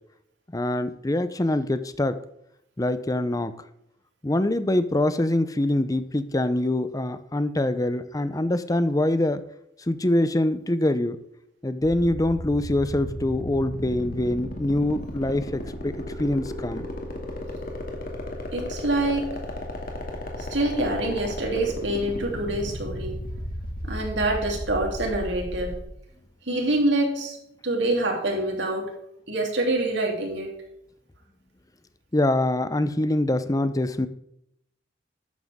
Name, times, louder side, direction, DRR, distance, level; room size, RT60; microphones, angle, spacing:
voice 1, 0.5-2.2 2.8-3.5 4.2-9.4 9.9-11.2 11.6-16.9 32.1-34.1, left 1 dB, 20° left, 12 dB, 0.6 m, -24 dB
sound 1, 11.8-25.8, left 1 dB, 50° left, 2.4 m, -34 dB
voice 2, 18.5-19.3 20.4-23.2 23.8-25.7 26.5-27.4 27.6-28.9 29.3-30.5, right 2 dB, 75° right, 0 dB, 3.3 m, -26 dB
12.5 x 9.2 x 3.7 m, 0.77 s
head